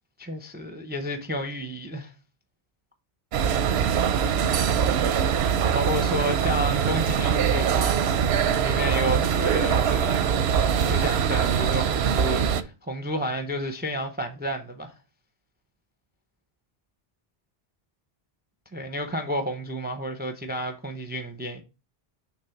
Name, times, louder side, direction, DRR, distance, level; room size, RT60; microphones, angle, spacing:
voice 1, 0.2-2.1 5.7-8.1 8.4-14.9 18.7-21.6, equal, 10° right, 0.6 m, -31 dB
sound 1, 3.3-12.6, right 7 dB, 90° right, 0.9 m, -23 dB
6.7 x 3.2 x 5.7 m
omnidirectional pair, 1.0 m